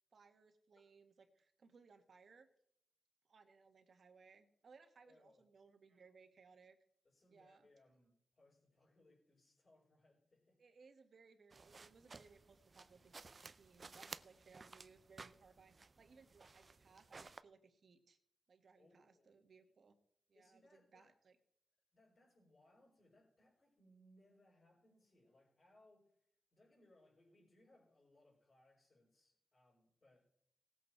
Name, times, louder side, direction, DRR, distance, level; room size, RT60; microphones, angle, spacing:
voice 1, 0.1-2.5 3.2-6.8 7.3-7.7 10.6-13.1 13.5-18.2 18.5-19.9 20.3-21.4, right 5 dB, 50° right, 7 dB, 1.6 m, -65 dB
voice 2, 5.0-5.4 7.0-10.6 18.8-19.4 20.3-21.1 21.9-30.3, left 1 dB, 35° left, -9 dB, 5.0 m, -70 dB
sound 1, 11.5-17.4, right 4 dB, 30° right, 0.4 m, -56 dB
18.5 x 8.3 x 4.6 m, 0.71 s
wide cardioid pair, 155°, 0 cm